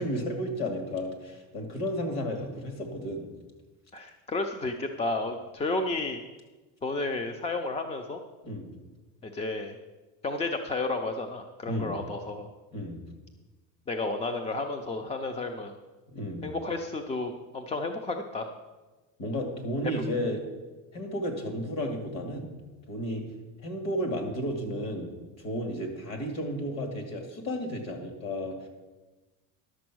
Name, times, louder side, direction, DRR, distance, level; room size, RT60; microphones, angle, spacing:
voice 1, 0.0-3.3 8.4-8.8 11.6-12.0 12.7-13.0 16.1-16.5 19.2-20.4 20.9-22.5 22.9-23.2 23.6-25.1 25.4-28.6, equal, 45° left, 4 dB, 2.3 m, -33 dB
voice 2, 3.9-6.2 6.8-8.2 9.2-9.8 10.2-12.5 13.9-15.7 16.4-18.5, left 2 dB, 15° left, 7 dB, 0.4 m, -32 dB
11.5 x 7.0 x 6.1 m, 1.2 s
cardioid pair, 150°, 38 cm